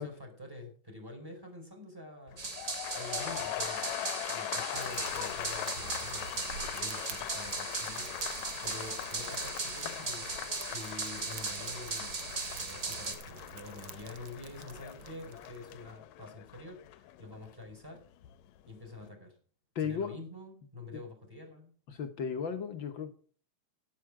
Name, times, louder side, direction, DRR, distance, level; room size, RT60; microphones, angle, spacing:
voice 1, 0.0-3.9 4.3-18.0 18.7-19.4 19.8-21.7, left 2 dB, 5° right, 4.4 m, -47 dB
sound 1, 2.3-18.4 18.7-19.1, left 14 dB, 80° left, 1.9 m, -41 dB
sound 2, 2.4-13.1, right 4 dB, 30° right, 1.8 m, -38 dB
Fire, 4.7-15.9, right 7 dB, 65° right, 1.4 m, -49 dB
voice 2, 19.7-20.1 20.9-21.0 21.9-23.1, left 7 dB, 60° left, 1.3 m, -35 dB
12.5 x 11.5 x 4.8 m
omnidirectional pair, 3.3 m